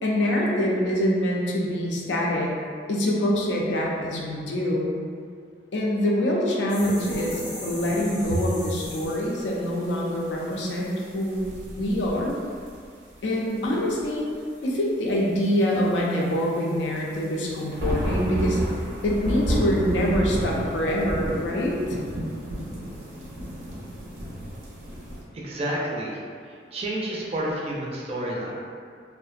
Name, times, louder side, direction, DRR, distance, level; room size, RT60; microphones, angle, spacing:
voice 1, 0.0-2.5 2.9-5.0 5.7-11.4 11.8-12.3 13.2-14.3 14.6-18.6 19.0-21.8, equal, 75° left, -3 dB, 0.4 m, -25 dB
sound 1, 6.7-9.5, left 1 dB, 25° left, 0.5 m, -36 dB
sound 2, 6.8-13.1 13.5-14.7 15.4-25.2, equal, 85° right, 0.6 m, -33 dB
voice 2, 25.3-26.2 26.7-28.5, right 1 dB, 35° right, -4 dB, 0.4 m, -29 dB
2.6 x 2.0 x 2.4 m, 2.2 s
head